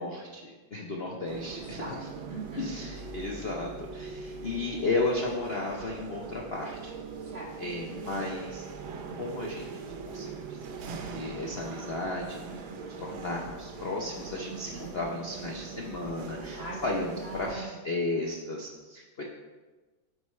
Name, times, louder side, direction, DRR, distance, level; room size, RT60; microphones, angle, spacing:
voice 1, 0.0-2.1 2.6-7.0 7.6-8.7 9.1-19.2, left 2 dB, 60° left, -1 dB, 0.6 m, -34 dB
sound 1, 1.3-17.5, right 5 dB, 80° right, 1.7 m, -41 dB
voice 2, 1.5-1.9 2.2-2.7 7.3-7.5 14.5-14.9 16.5-17.8, right 2 dB, 40° right, -2 dB, 0.9 m, -41 dB
13.0 x 4.7 x 3.2 m, 1.2 s
omnidirectional pair, 2.2 m